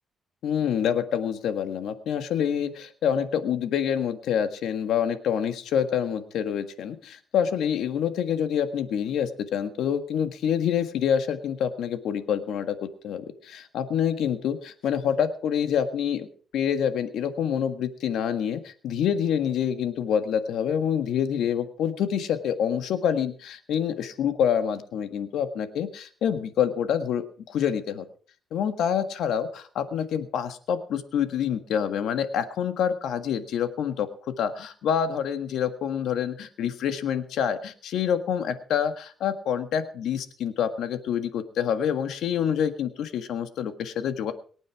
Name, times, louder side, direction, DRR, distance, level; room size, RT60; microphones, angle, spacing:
voice 1, 0.4-12.8 13.0-16.3 16.5-28.0 28.5-34.1 34.4-44.3, left 8 dB, 85° left, 9 dB, 1.6 m, -27 dB
22.0 x 9.2 x 4.7 m, 0.43 s
cardioid pair, 130°, 0 cm